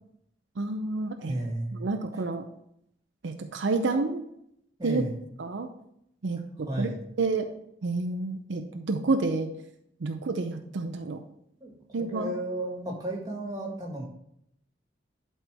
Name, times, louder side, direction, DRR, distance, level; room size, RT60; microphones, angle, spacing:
voice 1, 0.6-1.3 1.8-2.5 3.2-4.2 4.8-5.0 5.4-5.7 6.2-6.9 7.2-7.5 7.8-9.5 10.0-11.2 11.9-12.3, right 3 dB, 75° right, 6 dB, 0.6 m, -29 dB
voice 2, 1.3-1.9 4.8-5.2 6.6-7.0 11.6-11.7 12.0-14.0, right 1 dB, 20° right, -1 dB, 1.8 m, -33 dB
11.0 x 4.3 x 3.5 m, 0.74 s
head